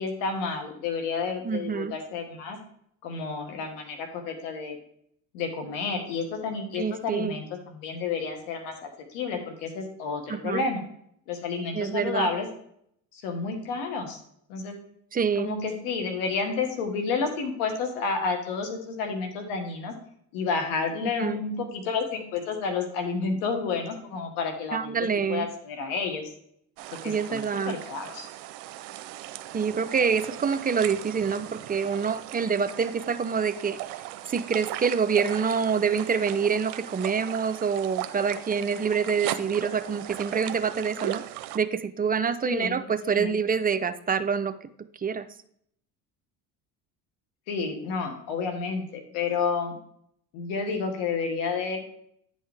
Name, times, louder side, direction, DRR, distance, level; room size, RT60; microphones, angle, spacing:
voice 1, 0.0-2.6 3.0-4.8 5.3-10.8 11.3-12.5 13.1-14.2 14.5-14.8 15.4-19.9 20.3-24.9 25.3-26.3 27.0-28.3 42.4-42.8 43.0-43.4 47.5-49.8 50.3-51.8, left 4 dB, 80° left, 4 dB, 1.4 m, -30 dB
voice 2, 1.4-1.9 6.8-7.4 10.3-10.6 11.7-12.3 15.1-15.5 21.0-21.4 24.7-25.5 27.0-27.8 29.5-33.8 34.3-41.2 41.5-44.5 45.0-45.3, right 6 dB, 20° right, 11 dB, 0.5 m, -26 dB
sound 1, 26.8-41.6, right 14 dB, 75° right, 0.6 m, -38 dB
9.6 x 5.4 x 3.4 m, 0.67 s
supercardioid pair, 75°, 40 cm